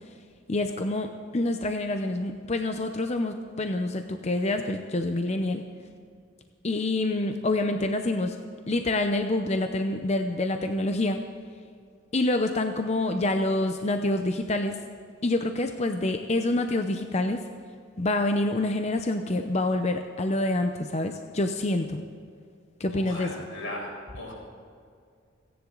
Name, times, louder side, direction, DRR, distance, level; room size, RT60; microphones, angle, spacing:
voice 1, 0.5-1.1 1.3-5.6 6.6-8.4 8.7-11.2 12.1-14.8 15.2-17.4 18.0-22.0 22.8-23.3, left 2 dB, 35° left, 6 dB, 0.6 m, -27 dB
voice 2, 22.9-23.9 24.1-24.3, left 1 dB, 85° left, -1 dB, 5.0 m, -37 dB
29.0 x 10.5 x 3.9 m, 2.3 s
head